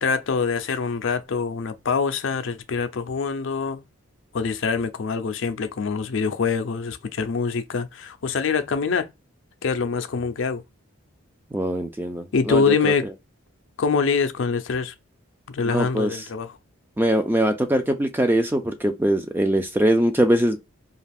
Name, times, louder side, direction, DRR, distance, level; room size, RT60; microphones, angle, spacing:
voice 1, 0.0-3.9 4.3-9.1 9.6-10.6 12.3-13.0 13.8-14.9 15.5-16.6, left 5 dB, 60° left, 0.4 m, -24 dB
voice 2, 11.5-12.9 15.7-16.1 17.0-20.6, right 1 dB, 10° right, 0.3 m, -22 dB
2.4 x 2.3 x 3.4 m
head